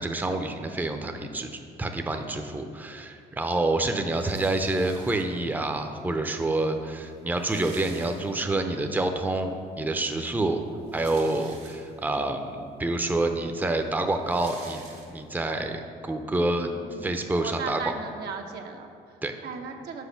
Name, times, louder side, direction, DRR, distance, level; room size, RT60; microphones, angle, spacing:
voice 1, 0.0-1.5 1.8-10.6 10.9-14.8 15.1-16.7 17.0-17.8 19.2-19.4, right 2 dB, 10° right, 5 dB, 0.6 m, -27 dB
sound 1, 4.1-5.6 6.4-6.5 6.7-6.8 7.1-8.7 9.1-9.2 10.6-12.1 12.8-12.9 13.1-15.5, right 4 dB, 85° right, 1.6 m, -48 dB
voice 2, 16.3-20.1, right 5 dB, 65° right, 3 dB, 0.8 m, -38 dB
6.3 x 4.8 x 5.7 m, 2.3 s
supercardioid pair, 65°, 18 cm